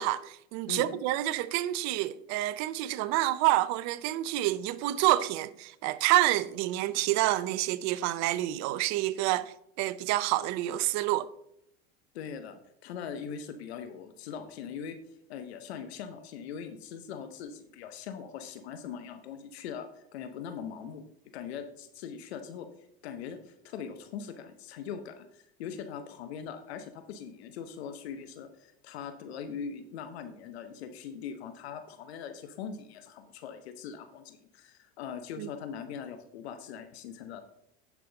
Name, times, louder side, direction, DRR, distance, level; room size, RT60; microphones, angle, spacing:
voice 1, 0.0-11.3 35.4-35.5, right 15 dB, 60° right, 0.6 m, -28 dB
voice 2, 0.7-1.0 12.1-15.0 15.3-21.1 21.3-22.7 23.0-37.4, left 7 dB, 80° left, 0.9 m, -41 dB
10.5 x 6.0 x 3.9 m
hypercardioid pair, 85°, 31 cm